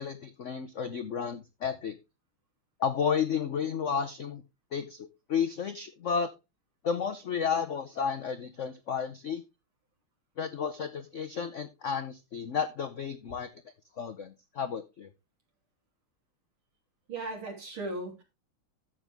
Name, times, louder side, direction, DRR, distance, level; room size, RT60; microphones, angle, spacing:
voice 1, 0.0-2.0 2.8-4.4 4.7-6.3 6.8-9.4 10.4-13.5 14.0-15.1, left 7 dB, 85° left, 9 dB, 0.6 m, -32 dB
voice 2, 17.1-18.2, right 2 dB, 80° right, 2 dB, 3.8 m, -37 dB
11.5 x 7.6 x 3.4 m, 0.25 s
omnidirectional pair, 2.3 m